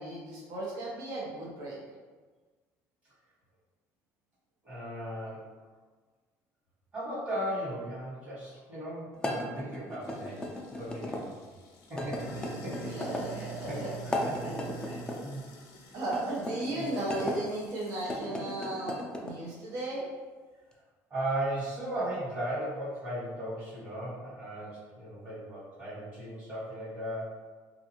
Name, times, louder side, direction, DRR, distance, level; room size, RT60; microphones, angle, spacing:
voice 1, 0.0-1.8 12.9-13.9 15.9-20.1, right 2 dB, 80° right, -6 dB, 0.9 m, -35 dB
voice 2, 4.6-5.5 6.9-11.4 11.9-13.0 13.3-13.8 14.0-15.4 15.8-15.9 16.7-16.8 21.1-27.4, right 1 dB, 35° right, -10 dB, 1.3 m, -37 dB
sound 1, 9.2-11.2 12.0-13.3 14.0-15.2 16.0-17.4 18.0-19.4, left 1 dB, 15° left, 0.3 m, -36 dB
Sink (filling or washing), 10.0-18.2, right 3 dB, 70° left, 0.6 m, -46 dB
2.4 x 2.4 x 2.9 m, 1.4 s
cardioid pair, 130°, 6 cm